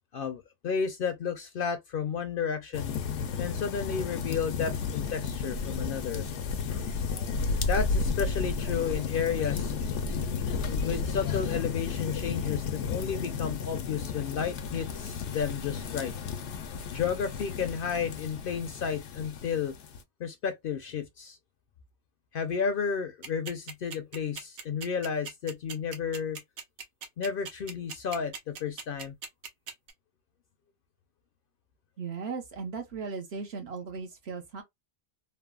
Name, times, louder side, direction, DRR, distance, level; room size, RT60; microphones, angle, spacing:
voice 1, 0.1-2.9 3.4-6.3 7.6-9.7 10.6-16.1 16.9-19.7 20.2-21.4 22.3-26.4 27.2-29.1, left 6 dB, 60° left, 0.6 m, -32 dB
sound 1, 2.7-20.0, left 5 dB, 85° left, 0.9 m, -33 dB
sound 2, 23.2-29.9, right 6 dB, 85° right, 1.1 m, -39 dB
voice 2, 32.0-34.6, right 5 dB, 65° right, 1.0 m, -37 dB
3.2 x 2.0 x 2.2 m
omnidirectional pair, 1.2 m